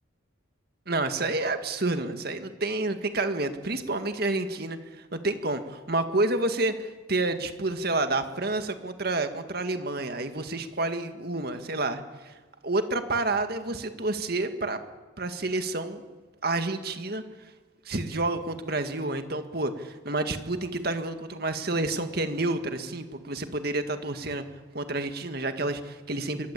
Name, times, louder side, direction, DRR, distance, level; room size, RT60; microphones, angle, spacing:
voice 1, 0.9-12.3 12.6-14.8 15.2-16.0 16.4-17.2 17.9-24.4 24.7-26.5, right 2 dB, 50° right, 7 dB, 2.0 m, -29 dB
25.0 x 23.0 x 8.5 m, 1.3 s
head